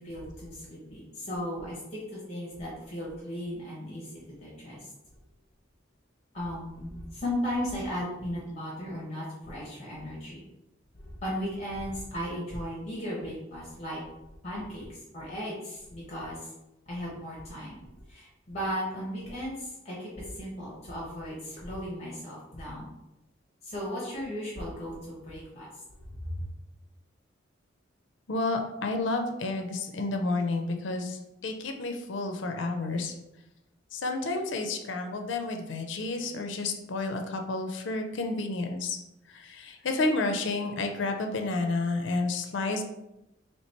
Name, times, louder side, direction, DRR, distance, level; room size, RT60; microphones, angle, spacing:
voice 1, 0.0-4.8 6.3-10.4 10.9-14.0 14.4-16.5 16.9-22.9 23.6-25.7 26.2-26.3, equal, 35° left, -6 dB, 1.0 m, -36 dB
voice 2, 28.3-33.1 33.9-39.0 39.3-42.8, left 3 dB, 75° left, 4 dB, 0.5 m, -30 dB
3.1 x 3.0 x 4.3 m, 0.90 s
head